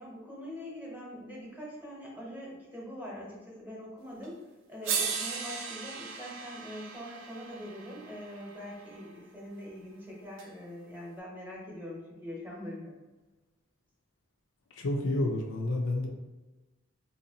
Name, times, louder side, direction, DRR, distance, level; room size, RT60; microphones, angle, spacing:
voice 1, 0.0-4.4 4.7-12.9, equal, 10° right, -5 dB, 1.0 m, -43 dB
sound 1, 4.2-4.3 4.8-9.0 10.4-10.5, right 6 dB, 65° right, 0.5 m, -37 dB
voice 2, 14.7-16.1, left 1 dB, 70° left, 1 dB, 0.6 m, -29 dB
4.3 x 2.8 x 2.8 m, 1.2 s
head